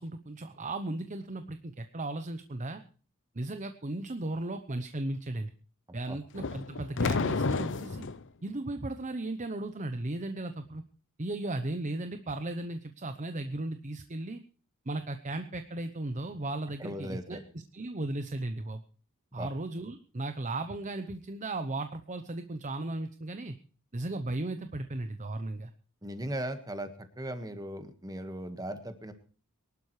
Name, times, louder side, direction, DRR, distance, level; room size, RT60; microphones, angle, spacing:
voice 1, 0.0-2.8 3.3-5.5 5.9-8.1 8.4-10.8 11.2-14.4 14.9-18.8 19.3-23.6 23.9-25.7, right 2 dB, 35° right, 8 dB, 0.8 m, -36 dB
sound 1, 6.3-8.2, left 3 dB, 60° left, 0.7 m, -30 dB
voice 2, 16.8-17.4 19.3-19.5 26.0-26.9 27.2-29.1, right 1 dB, 15° right, 8 dB, 1.6 m, -37 dB
23.0 x 12.0 x 3.3 m, 0.38 s
head